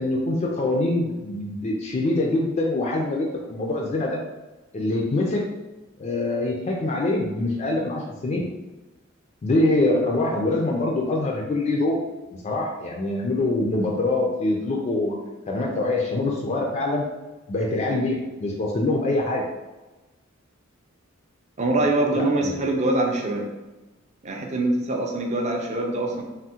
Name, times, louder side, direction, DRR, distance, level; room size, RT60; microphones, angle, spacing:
voice 1, 0.0-4.2 4.7-5.4 6.0-8.5 9.4-12.0 12.3-15.2 15.5-17.1 17.5-19.4 22.1-22.6, left 2 dB, 35° left, -1 dB, 0.3 m, -24 dB
voice 2, 21.6-23.5 24.2-26.2, right 2 dB, 35° right, 1 dB, 0.5 m, -24 dB
3.5 x 2.0 x 2.8 m, 1.1 s
head